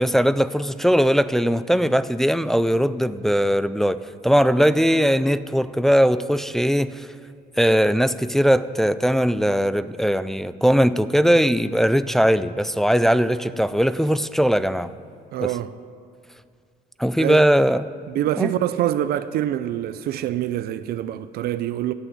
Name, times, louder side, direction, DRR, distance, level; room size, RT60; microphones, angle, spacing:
voice 1, 0.0-7.1 7.6-14.9 15.4-15.5 17.0-17.9 18.4-18.5, equal, ahead, 0.3 m, -20 dB
voice 2, 15.3-15.7 17.2-17.4 18.1-21.9, right 12 dB, 65° right, 0.5 m, -25 dB
13.5 x 6.3 x 9.1 m
cardioid pair, 110°, 17 cm